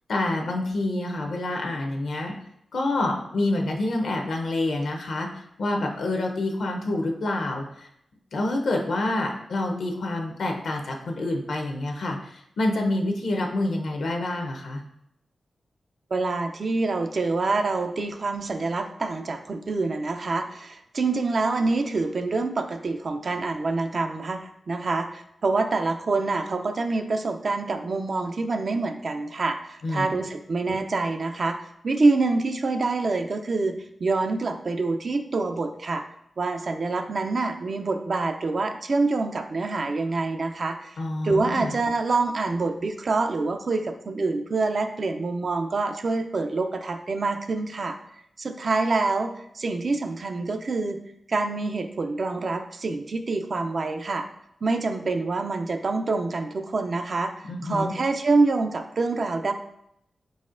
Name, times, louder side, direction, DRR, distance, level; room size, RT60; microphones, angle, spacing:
voice 1, 0.1-2.4 2.7-7.9 8.3-14.8 29.8-30.1 41.0-41.7 57.5-57.9, left 2 dB, 80° left, 2 dB, 0.6 m, -27 dB
voice 2, 16.1-31.6 31.8-36.0 36.4-48.0 48.4-51.0 51.3-54.3 54.6-59.5, right 3 dB, 60° right, 7 dB, 0.4 m, -26 dB
4.2 x 4.1 x 2.5 m, 0.75 s
cardioid pair, 60°, 0 cm